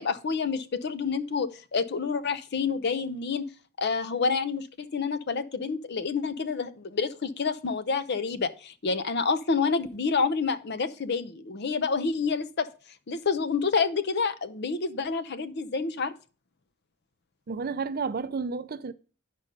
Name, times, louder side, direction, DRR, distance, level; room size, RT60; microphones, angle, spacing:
voice 1, 0.0-3.5 3.8-12.7 13.1-16.1, left 5 dB, 55° left, 0.6 m, -28 dB
voice 2, 17.5-18.9, right 5 dB, 50° right, 0.5 m, -31 dB
10.0 x 5.2 x 5.2 m
head